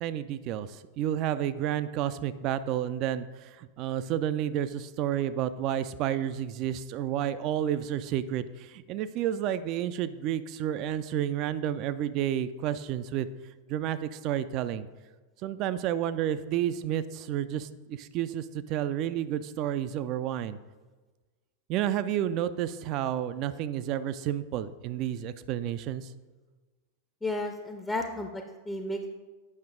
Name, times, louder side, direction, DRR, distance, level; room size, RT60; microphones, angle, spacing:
voice 1, 0.0-13.3 13.7-14.9 15.4-20.6 21.7-26.1, right 11 dB, 40° right, 14 dB, 0.4 m, -30 dB
voice 2, 27.2-29.1, left 1 dB, 10° left, 3 dB, 0.6 m, -33 dB
8.5 x 5.8 x 3.7 m, 1.3 s
figure-of-eight pair, 90°, 0 cm